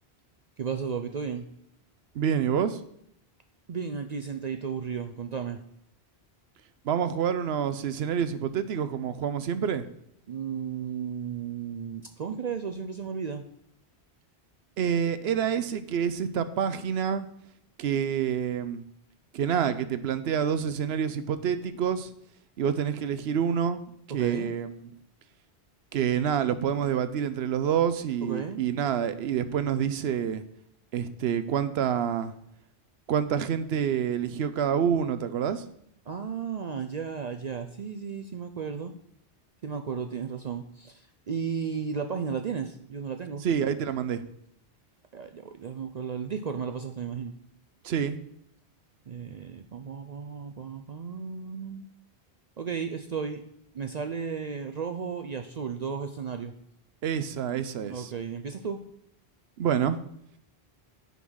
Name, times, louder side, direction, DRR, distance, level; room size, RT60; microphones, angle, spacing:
voice 1, 0.6-1.5 3.7-5.6 10.3-13.4 24.1-24.5 28.2-28.6 36.1-38.9 39.6-43.4 45.1-47.3 49.1-51.9 52.6-53.4 53.7-56.5 57.9-58.8, right 6 dB, 50° right, 7 dB, 0.5 m, -34 dB
voice 2, 2.1-2.8 6.8-9.8 14.8-17.3 17.8-18.8 19.3-22.1 22.6-23.8 24.1-24.9 25.9-30.4 30.9-32.3 33.1-35.6 43.4-44.2 47.8-48.2 57.0-58.1 59.6-60.0, right 8 dB, 75° right, 12 dB, 0.9 m, -27 dB
9.2 x 3.9 x 6.2 m, 0.72 s
omnidirectional pair, 1.1 m